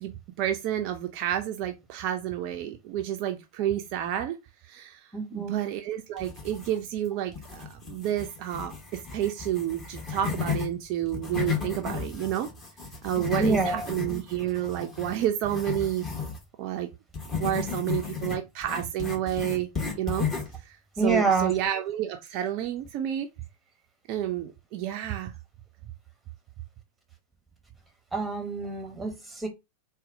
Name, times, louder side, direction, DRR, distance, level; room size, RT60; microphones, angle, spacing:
voice 1, 0.0-4.4 4.7-5.0 5.3-12.5 13.0-16.1 16.6-16.9 17.3-19.7 20.0-20.3 21.0-23.3 24.1-25.3, right 11 dB, 40° right, 0.4 m, -30 dB
voice 2, 5.1-5.5 13.2-13.9 21.0-21.5 28.1-29.5, right 3 dB, 5° right, 0.9 m, -27 dB
sound 1, 6.2-7.0 7.3-10.7 11.1-16.4 17.1-20.6, left 6 dB, 20° left, 1.1 m, -34 dB
3.9 x 2.0 x 2.5 m
figure-of-eight pair, 90°, 0 cm